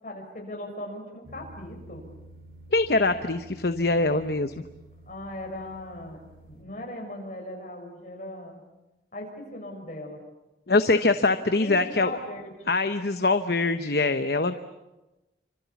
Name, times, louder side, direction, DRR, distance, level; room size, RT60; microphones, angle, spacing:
voice 1, 0.0-2.1 5.1-6.2 6.5-8.6 9.1-10.2 11.6-12.7, left 1 dB, 45° left, 2 dB, 6.6 m, -39 dB
sound 1, 1.2-6.6, right 1 dB, 55° right, 4.9 m, -50 dB
voice 2, 2.7-4.5 10.7-12.1 12.7-14.6, left 3 dB, 60° left, 9 dB, 1.0 m, -23 dB
28.5 x 26.0 x 7.2 m, 1.0 s
head